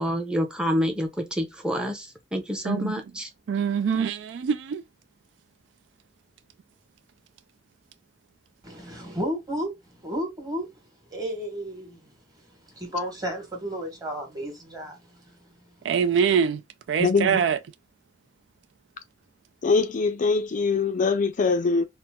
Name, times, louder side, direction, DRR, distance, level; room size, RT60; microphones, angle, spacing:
voice 1, 0.0-2.1 2.3-3.3, equal, 5° right, 0.6 m, -27 dB
voice 2, 2.6-3.0 3.5-4.8 15.8-16.6 16.9-17.6, right 7 dB, 75° right, 0.3 m, -24 dB
voice 3, 8.6-10.7 11.1-12.1 12.4-15.4 15.8-15.9, equal, 20° right, 1.2 m, -33 dB
voice 4, 17.0-17.4 19.6-21.9, left 4 dB, 45° left, 0.4 m, -23 dB
4.2 x 2.0 x 2.2 m
head